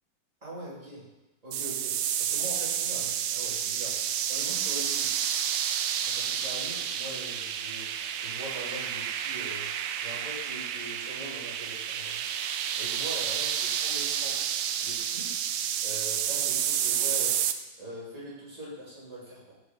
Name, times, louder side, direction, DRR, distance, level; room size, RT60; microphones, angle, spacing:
voice 1, 0.4-1.0 1.4-1.9 2.2-5.1 6.0-9.7 10.0-12.2 12.7-13.5 13.8-14.3 14.8-15.3 15.8-17.3 17.8-19.5, right 1 dB, 20° right, -7 dB, 3.2 m, -42 dB
sound 1, 1.5-17.5, right 9 dB, 80° right, 1.3 m, -30 dB
10.5 x 5.7 x 5.6 m, 1.0 s
omnidirectional pair, 2.0 m